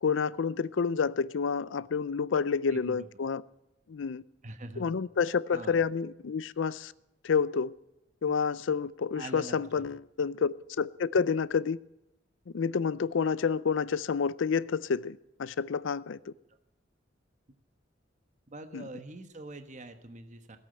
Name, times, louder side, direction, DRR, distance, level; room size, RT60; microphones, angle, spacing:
voice 1, 0.0-3.4 3.9-4.2 4.8-6.9 7.2-7.7 8.2-11.8 12.5-16.3 18.7-18.9, left 5 dB, 70° left, 0.5 m, -29 dB
voice 2, 2.7-3.1 4.4-5.0 5.5-5.8 9.1-9.8 18.5-20.6, right 2 dB, 40° right, 1.3 m, -44 dB
17.0 x 8.6 x 9.0 m
head